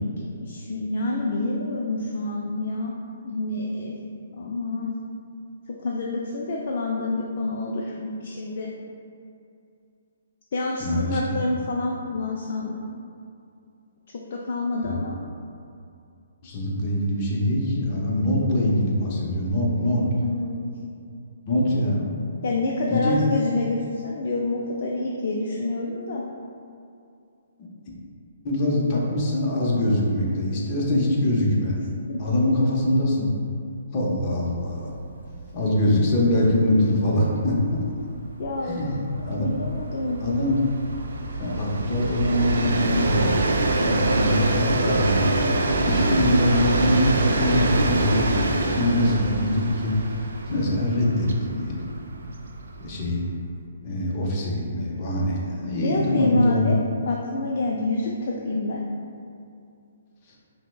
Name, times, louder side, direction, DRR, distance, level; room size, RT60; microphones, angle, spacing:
voice 1, 0.0-2.9 3.2-3.9 4.4-4.9 5.7-8.7 10.5-12.8 14.3-15.2 20.1-20.7 22.4-26.2 32.1-32.2 38.4-38.8 39.4-40.2 55.8-56.8 57.1-58.8, left 2 dB, 55° left, -2 dB, 0.3 m, -27 dB
voice 2, 10.8-11.2 14.8-14.9 16.4-20.0 21.5-22.1 22.9-23.2 28.4-31.8 32.2-33.3 33.9-34.9 35.5-37.9 38.6-39.6 40.2-40.6 41.4-43.3 43.7-45.2 45.8-50.0 50.5-51.9 52.8-53.3 53.8-56.7, left 1 dB, 35° left, -3 dB, 0.7 m, -23 dB
Train, 34.9-35.1 35.4-35.5 35.8-53.2, right 2 dB, 80° right, 0.3 m, -25 dB
5.6 x 2.0 x 2.3 m, 2.5 s
hypercardioid pair, 150°, 0 cm